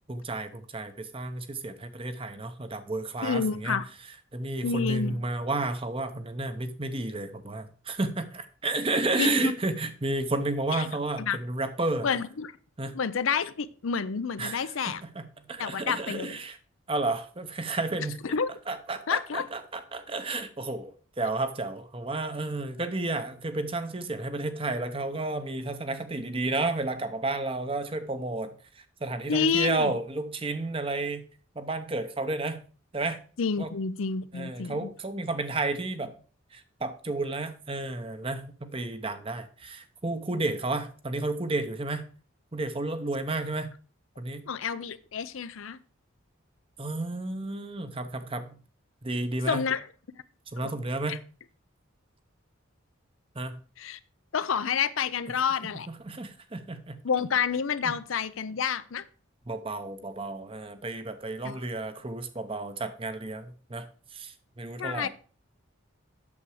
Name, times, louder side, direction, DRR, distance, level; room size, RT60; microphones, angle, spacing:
voice 1, 0.1-3.8 4.3-12.1 12.8-12.9 14.4-16.6 16.9-18.2 18.7-28.6 29.0-31.3 31.5-32.6 32.9-33.2 33.6-33.7 34.3-36.2 36.5-42.0 42.5-43.7 44.2-44.5 46.8-48.6 49.0-49.6 50.5-51.2 53.3-53.6 55.9-57.0 57.8-58.0 59.5-63.9 64.1-65.1, right 2 dB, 25° right, 10 dB, 0.8 m, -32 dB
voice 2, 3.2-3.8 4.6-5.2 9.2-9.5 10.7-10.9 11.2-11.4 12.0-12.5 12.9-15.0 15.6-16.4 18.2-18.5 19.1-19.5 29.3-29.9 33.4-34.9 44.5-45.8 49.5-49.8 50.6-50.8 51.1-51.2 53.8-54.0 54.3-55.9 57.0-59.0 61.4-61.6 64.8-65.1, left 6 dB, 75° left, 14 dB, 0.6 m, -29 dB
8.6 x 7.1 x 4.8 m, 0.39 s
head